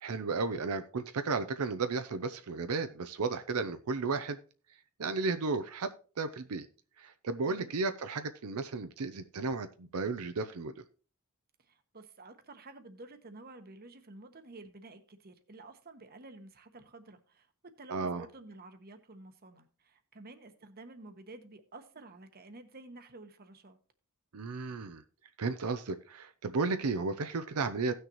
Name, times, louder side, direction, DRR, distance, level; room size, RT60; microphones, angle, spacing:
voice 1, 0.0-4.4 5.0-6.7 7.0-10.7 17.9-18.3 24.3-25.0 25.4-27.9, right 4 dB, 85° right, 0.6 m, -34 dB
voice 2, 11.6-23.8, right 2 dB, 45° right, 1.1 m, -51 dB
16.5 x 6.5 x 3.0 m
head